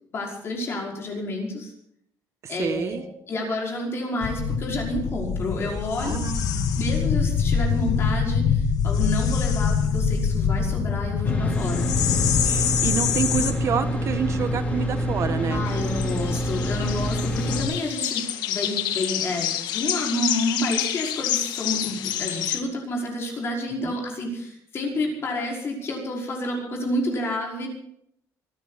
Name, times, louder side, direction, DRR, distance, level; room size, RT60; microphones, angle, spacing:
voice 1, 0.1-1.7 2.5-6.1 6.8-11.9 15.5-27.7, left 1 dB, 35° left, -1 dB, 5.5 m, -29 dB
voice 2, 2.4-3.0 6.0-6.7 12.4-15.6 23.8-24.0, right 7 dB, 40° right, 10 dB, 1.4 m, -28 dB
sound 1, 4.2-13.5, left 6 dB, 60° left, 1.9 m, -24 dB
sound 2, 11.2-17.6, equal, 20° left, 3.5 m, -26 dB
sound 3, 15.6-22.6, left 11 dB, 80° left, 1.7 m, -29 dB
25.0 x 13.5 x 4.2 m, 0.72 s
cardioid pair, 160°, 7 cm